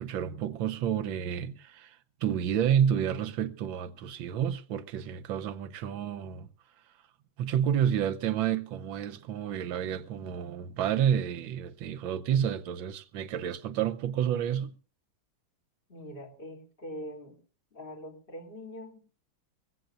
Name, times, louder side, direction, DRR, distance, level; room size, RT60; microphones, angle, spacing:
voice 1, 0.0-6.5 7.4-14.7, right 9 dB, 75° right, 1.6 m, -30 dB
voice 2, 15.9-17.4 17.7-19.0, equal, 25° left, 2.9 m, -43 dB
21.0 x 16.0 x 2.5 m
omnidirectional pair, 2.2 m